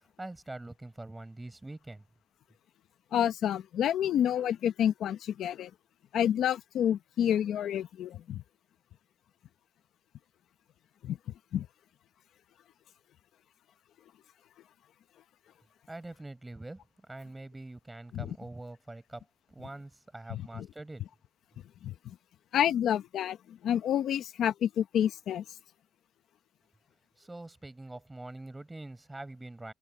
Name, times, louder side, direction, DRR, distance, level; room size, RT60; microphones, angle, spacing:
voice 1, 0.0-2.0 15.9-21.0 27.2-29.7, right 2 dB, 15° right, 5.5 m, -44 dB
voice 2, 3.1-5.7 6.1-8.4 11.0-11.2 11.5-11.7 18.1-18.3 20.3-20.7 21.8-22.2 22.5-25.4, left 10 dB, 75° left, 1.1 m, -29 dB
open air
cardioid pair, 90°, 0 cm